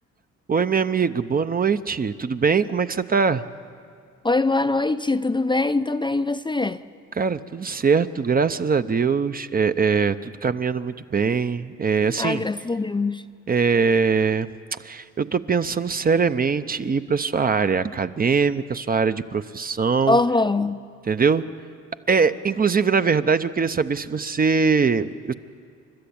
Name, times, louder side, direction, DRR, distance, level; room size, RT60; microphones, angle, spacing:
voice 1, 0.5-3.4 7.1-12.4 13.5-20.2 21.1-21.4 22.1-25.3, right 5 dB, 30° right, 0.7 m, -22 dB
voice 2, 4.2-6.8 12.2-13.2 20.1-20.8, left 3 dB, 15° left, 0.5 m, -22 dB
29.5 x 12.5 x 8.6 m
cardioid pair, 90°, 30 cm